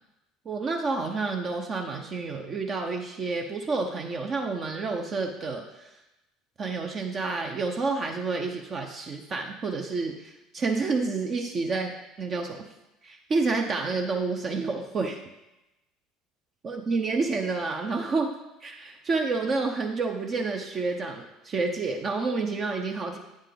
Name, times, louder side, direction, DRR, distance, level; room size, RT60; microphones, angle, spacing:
voice 1, 0.4-5.9 6.6-12.6 13.0-15.2 16.6-18.3 18.6-23.2, right 3 dB, 35° right, 3 dB, 0.7 m, -29 dB
9.0 x 5.5 x 3.3 m, 0.95 s
figure-of-eight pair, 60°, 0 cm